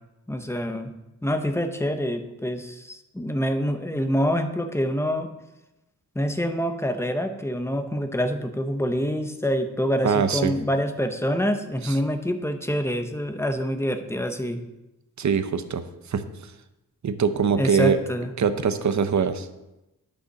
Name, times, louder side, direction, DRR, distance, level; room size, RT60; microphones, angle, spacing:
voice 1, 0.3-0.9 1.2-5.3 6.1-14.6 17.6-18.3, equal, 10° left, 7 dB, 0.7 m, -26 dB
voice 2, 10.0-10.5 11.8-11.9 15.2-16.2 17.0-18.0 18.4-19.5, right 6 dB, 55° right, 11 dB, 0.7 m, -23 dB
9.7 x 5.3 x 6.4 m, 0.96 s
wide cardioid pair, 130°, 35 cm